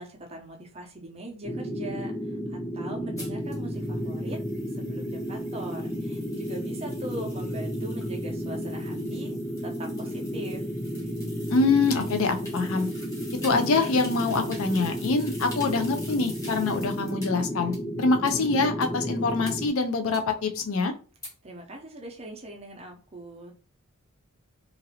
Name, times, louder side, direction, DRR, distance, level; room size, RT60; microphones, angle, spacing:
voice 1, 0.0-4.4 4.7-9.4 9.6-10.6 21.4-23.5, right 1 dB, 25° right, 0 dB, 0.6 m, -41 dB
sound 1, 1.4-19.7, equal, 40° left, 1.3 m, -33 dB
sound 2, 3.2-17.3 17.7-17.8 18.3-18.4 18.8-18.9 19.4-19.5 20.1-20.2 20.6-20.7 21.2-21.3, left 1 dB, 15° left, 0.9 m, -46 dB
voice 2, 11.5-12.9 13.4-20.9, left 3 dB, 70° left, 6 dB, 0.4 m, -25 dB
2.9 x 2.6 x 2.8 m, 0.37 s
head